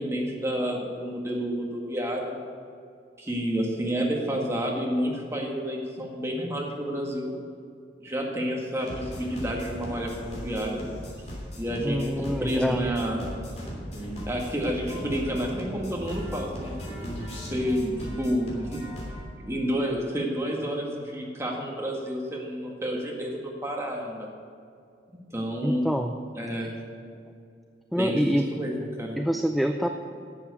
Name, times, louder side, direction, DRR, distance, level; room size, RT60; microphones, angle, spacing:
voice 1, 0.0-2.4 3.2-7.4 8.0-10.8 11.6-13.2 14.3-16.8 17.5-18.8 19.5-24.3 25.3-25.9 26.3-26.7 27.9-29.2, equal, 15° right, -1 dB, 1.8 m, -29 dB
sound 1, 8.8-19.2, equal, 40° left, 3.1 m, -37 dB
voice 2, 11.8-12.9 25.6-26.2 27.9-28.5 29.2-29.9, equal, ahead, 5 dB, 0.4 m, -26 dB
11.0 x 7.7 x 6.9 m, 2.3 s
head